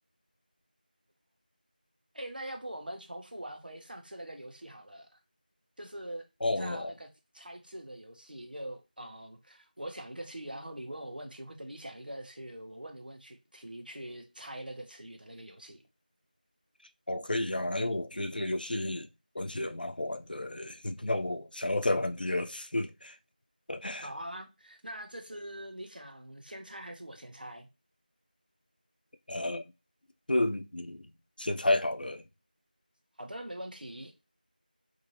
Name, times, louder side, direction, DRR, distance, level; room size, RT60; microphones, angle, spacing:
voice 1, 2.1-5.2 5.8-7.1 7.3-15.8 23.8-27.7 33.2-34.1, right 1 dB, 70° right, 0.8 m, -43 dB
voice 2, 6.4-6.9 17.1-19.1 19.3-23.2 23.7-24.1 29.3-29.7 30.3-31.1 31.4-32.2, left 1 dB, 70° left, 0.4 m, -31 dB
2.8 x 2.6 x 2.7 m
figure-of-eight pair, 175°, 5 cm